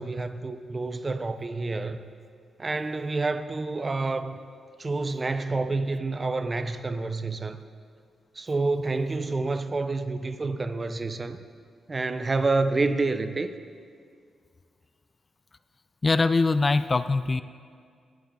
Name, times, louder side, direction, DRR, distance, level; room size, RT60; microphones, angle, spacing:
voice 1, 0.0-2.0 2.6-4.4 4.8-7.6 8.4-11.4 11.9-13.5, right 3 dB, 30° right, 0.6 m, -28 dB
voice 2, 16.0-17.4, left 3 dB, 35° left, 0.3 m, -22 dB
13.0 x 10.0 x 3.8 m
cardioid pair, 70°, 0 cm